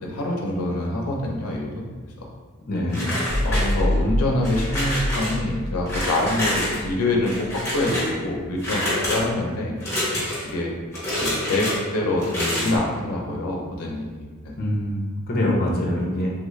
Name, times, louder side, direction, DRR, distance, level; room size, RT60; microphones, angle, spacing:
voice 1, 0.0-1.9 2.2-2.3 3.4-9.8 10.4-10.7 11.2-14.5, left 2 dB, 90° left, -1 dB, 0.6 m, -25 dB
voice 2, 2.7-3.0 14.6-16.3, left 1 dB, 45° left, -2 dB, 0.6 m, -24 dB
sound 1, 2.9-4.0 4.4-5.3 5.9-6.8 7.2-8.1 8.6-9.2 9.8-10.5 10.9-11.8 12.2-12.8, left 1 dB, 15° left, 1.1 m, -27 dB
sound 2, 3.3-7.8, equal, 85° right, 0.7 m, -27 dB
3.3 x 2.4 x 3.1 m, 1.5 s
head